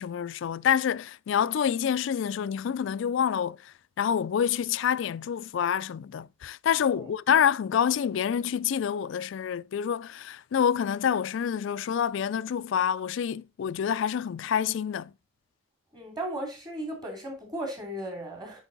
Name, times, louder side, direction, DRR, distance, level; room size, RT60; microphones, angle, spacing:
voice 1, 0.0-15.1, left 8 dB, 65° left, 0.3 m, -27 dB
voice 2, 15.9-18.6, right 1 dB, 20° right, 2.8 m, -36 dB
9.0 x 4.8 x 3.9 m
head